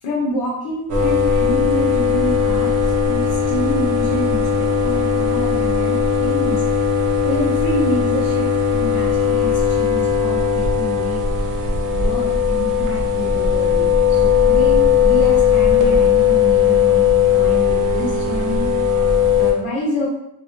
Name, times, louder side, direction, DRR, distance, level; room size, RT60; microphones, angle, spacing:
voice 1, 0.0-6.6 7.2-11.3 12.0-18.7 19.4-20.1, equal, 90° left, -5 dB, 0.8 m, -27 dB
sound 1, 0.9-19.5, left 6 dB, 40° right, 0.5 m, -17 dB
2.2 x 2.1 x 2.9 m, 0.80 s
cardioid pair, 105°, 49 cm